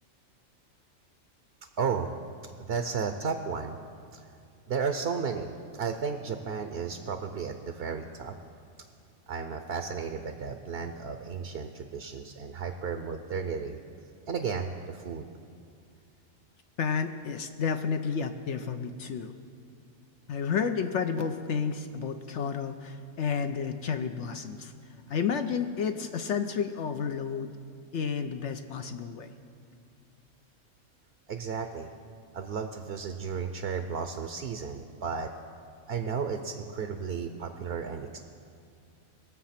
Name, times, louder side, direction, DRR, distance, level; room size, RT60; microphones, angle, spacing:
voice 1, 1.8-2.2 2.7-3.8 4.1-4.2 4.7-8.3 9.3-13.8 14.3-15.3 31.3-31.9 32.3-35.3 35.9-38.2, right 6 dB, 55° right, 6 dB, 0.8 m, -33 dB
voice 2, 16.8-19.3 20.3-24.7 25.1-27.5 27.9-29.3, left 6 dB, 65° left, 7 dB, 0.9 m, -31 dB
20.5 x 7.4 x 5.8 m, 2.4 s
omnidirectional pair, 1.4 m